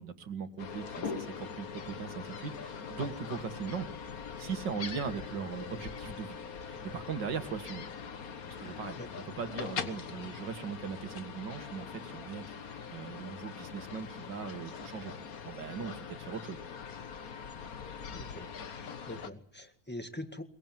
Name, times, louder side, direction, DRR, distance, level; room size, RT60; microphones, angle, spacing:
voice 1, 0.0-3.9 4.4-6.4 6.7-7.9 8.6-9.0 9.3-15.1 15.4-16.6, right 6 dB, 85° right, 9 dB, 2.5 m, -39 dB
sound 1, 0.6-19.3, left 6 dB, 55° left, 1.7 m, -42 dB
voice 2, 18.1-20.4, left 1 dB, 5° left, 7 dB, 1.6 m, -44 dB
22.5 x 21.0 x 9.2 m, 0.64 s
omnidirectional pair, 1.9 m